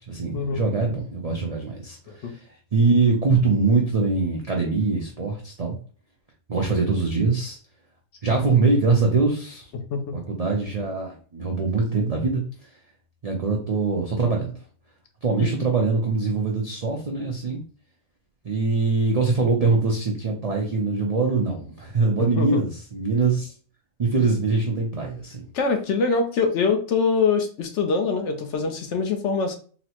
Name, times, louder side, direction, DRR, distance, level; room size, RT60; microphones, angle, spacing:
voice 1, 0.1-2.4 2.7-5.8 6.5-7.6 8.2-9.7 10.1-12.4 13.2-14.5 15.2-17.6 18.4-23.5 24.0-25.4, right 4 dB, 55° right, -1 dB, 0.4 m, -23 dB
voice 2, 22.2-22.6 25.5-29.5, left 4 dB, 65° left, 5 dB, 0.9 m, -24 dB
3.9 x 2.0 x 2.9 m, 0.41 s
omnidirectional pair, 1.4 m